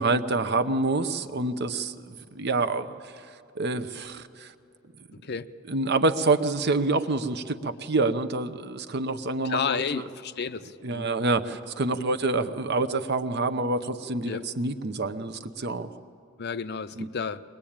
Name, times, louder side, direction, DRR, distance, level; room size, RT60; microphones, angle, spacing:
voice 1, 0.0-3.3 3.5-4.5 5.7-10.0 10.8-15.9 17.0-17.1, right 3 dB, 55° right, 11 dB, 0.8 m, -27 dB
voice 2, 9.4-11.1 11.9-12.1 14.3-14.4 16.4-17.4, left 6 dB, 55° left, 12 dB, 0.6 m, -31 dB
22.5 x 20.5 x 8.8 m, 2.5 s
head